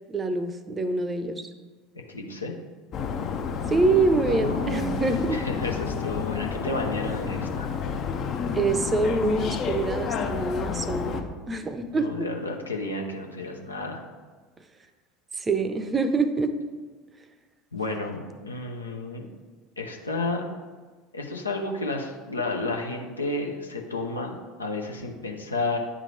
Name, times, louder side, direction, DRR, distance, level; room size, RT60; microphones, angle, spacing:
voice 1, 0.1-1.5 3.7-5.4 8.5-12.3 15.3-16.5, right 3 dB, 25° right, 10 dB, 0.6 m, -25 dB
voice 2, 1.9-2.5 4.3-4.9 5.3-7.7 11.9-14.0 17.7-19.3 19.8-20.5 21.1-25.8, left 2 dB, 85° left, 2 dB, 0.7 m, -31 dB
sound 1, 2.9-11.2, left 6 dB, 45° left, 0.6 m, -30 dB
9.5 x 3.7 x 3.2 m, 1.4 s
figure-of-eight pair, 70°, 0 cm